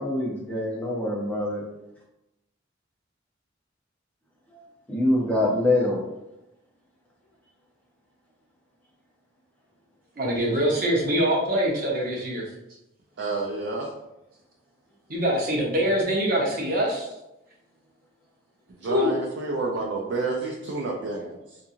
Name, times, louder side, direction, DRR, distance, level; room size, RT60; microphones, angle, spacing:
voice 1, 0.0-1.6 4.9-6.0, left 1 dB, 10° left, -4 dB, 0.6 m, -24 dB
voice 2, 10.2-12.4 15.1-17.1 18.9-19.1, equal, 50° right, -3 dB, 0.7 m, -24 dB
voice 3, 13.2-13.9 18.7-21.6, right 3 dB, 65° right, -1 dB, 0.4 m, -30 dB
2.7 x 2.5 x 2.4 m, 0.90 s
head